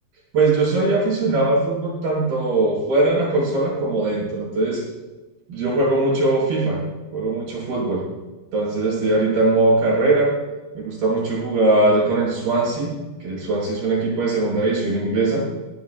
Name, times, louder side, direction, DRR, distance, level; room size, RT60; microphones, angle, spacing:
voice 1, 0.3-4.8 5.5-6.8 7.1-8.0 8.5-10.3 10.7-12.9 13.2-15.4, right 2 dB, 55° right, -4 dB, 7.6 m, -20 dB
21.0 x 15.5 x 2.3 m, 1.2 s
omnidirectional pair, 5.1 m